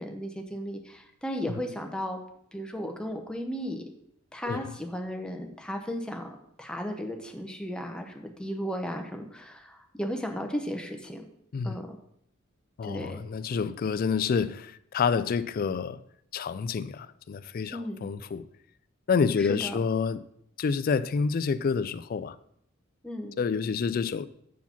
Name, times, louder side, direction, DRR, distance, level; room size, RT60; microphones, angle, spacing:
voice 1, 0.0-2.2 2.5-3.8 4.3-6.3 6.6-11.3 11.6-12.0 12.9-13.2 17.7-18.1 19.4-19.7 23.0-23.4, equal, 5° left, 0.8 m, -35 dB
voice 2, 12.8-16.0 16.3-18.4 19.1-20.2 20.6-22.3 23.4-24.3, left 5 dB, 45° left, 0.3 m, -28 dB
7.1 x 4.7 x 5.8 m
head